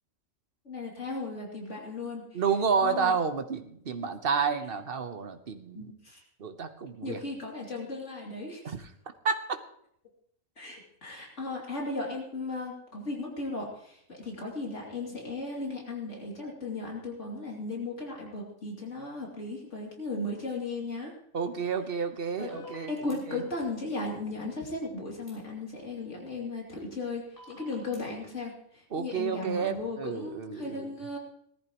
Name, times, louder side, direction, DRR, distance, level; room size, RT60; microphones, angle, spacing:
voice 1, 0.6-2.4 2.8-3.2 4.0-4.1 5.7-6.2 7.0-8.7 10.6-21.1 22.4-22.5 22.9-31.2, left 2 dB, 65° left, -2 dB, 3.1 m, -36 dB
voice 2, 2.3-5.9 6.4-7.2 8.6-8.8 9.2-9.6 21.3-23.0 23.3-23.5 28.9-30.9, right 5 dB, 50° right, 8 dB, 1.1 m, -30 dB
sound 1, 22.5-23.1 25.3-25.4 27.4-28.0, left 1 dB, 15° left, 5.9 m, -46 dB
18.5 x 14.0 x 3.0 m, 0.70 s
omnidirectional pair, 1.3 m